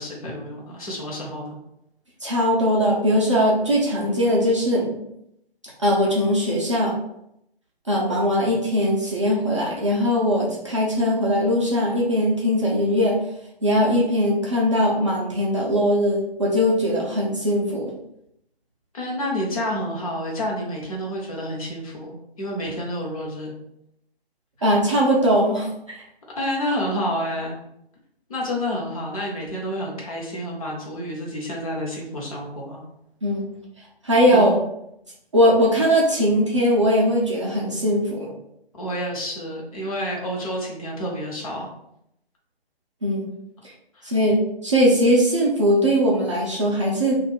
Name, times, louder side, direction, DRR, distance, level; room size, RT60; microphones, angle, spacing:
voice 1, 0.0-1.6 18.9-23.5 26.4-27.5 28.3-32.8 34.3-34.6 38.7-41.7 43.9-44.2, equal, 35° left, -3 dB, 0.8 m, -29 dB
voice 2, 2.2-5.0 5.8-6.9 7.9-13.2 13.6-17.9 24.6-26.0 33.2-33.4 34.0-34.6 35.3-38.3 43.0-43.3 43.6-43.7 44.0-47.2, equal, 30° right, -5 dB, 0.5 m, -20 dB
2.5 x 2.4 x 3.4 m, 0.79 s
figure-of-eight pair, 145°, 32 cm